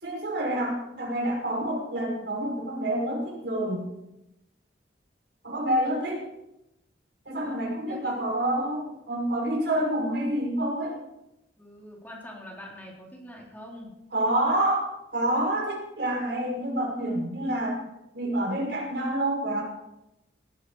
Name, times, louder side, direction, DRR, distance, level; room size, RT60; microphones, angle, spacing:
voice 1, 0.0-3.9 5.4-6.2 7.3-11.0 14.1-17.8 18.1-19.6, right 1 dB, 65° right, -1 dB, 5.6 m, -28 dB
voice 2, 7.4-8.2 11.6-13.9, equal, 10° left, -2 dB, 3.7 m, -44 dB
18.0 x 13.5 x 4.9 m, 0.89 s
head